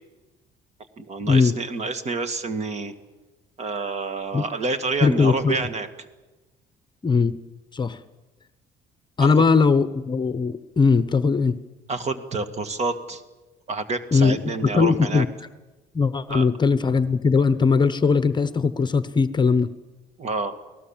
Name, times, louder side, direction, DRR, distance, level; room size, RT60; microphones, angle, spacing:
voice 1, 1.0-2.9 3.6-5.9 9.2-9.3 11.9-13.2 13.7-15.3 16.3-16.5 20.2-20.6, right 3 dB, 40° right, 10 dB, 2.1 m, -28 dB
voice 2, 5.0-5.6 7.0-7.4 7.7-8.0 9.2-11.6 14.1-15.3 15.9-19.7, left 4 dB, 25° left, 13 dB, 0.9 m, -20 dB
29.5 x 18.5 x 7.4 m, 1.2 s
cardioid pair, 110°, 17 cm